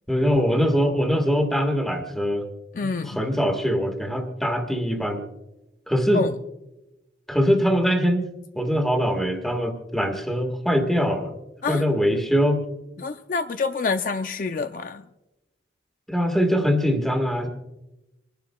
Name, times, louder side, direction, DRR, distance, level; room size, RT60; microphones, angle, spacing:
voice 1, 0.1-2.5 2.8-5.2 5.9-6.2 7.3-8.3 8.5-11.3 11.7-12.6 16.1-17.5, equal, ahead, 5 dB, 1.5 m, -22 dB
voice 2, 2.7-3.2 6.1-6.3 11.6-11.8 13.0-15.0, left 4 dB, 50° left, 9 dB, 0.4 m, -27 dB
27.0 x 11.5 x 2.2 m, 0.96 s
head